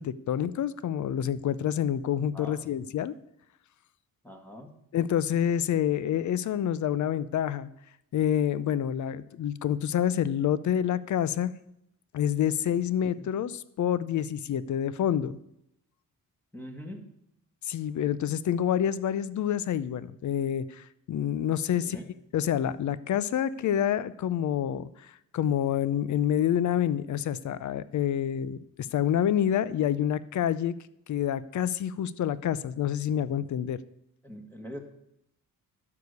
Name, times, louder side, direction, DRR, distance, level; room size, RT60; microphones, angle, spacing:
voice 1, 0.0-3.1 4.9-7.7 8.1-11.5 12.1-15.4 17.6-22.0 22.3-30.7 31.1-33.8, left 10 dB, 55° left, 17 dB, 0.6 m, -28 dB
voice 2, 4.2-4.8 13.1-13.3 16.5-17.1 21.7-22.1 34.2-34.8, equal, 5° left, 3 dB, 1.6 m, -42 dB
12.0 x 4.9 x 8.1 m, 0.80 s
cardioid pair, 110°, 34 cm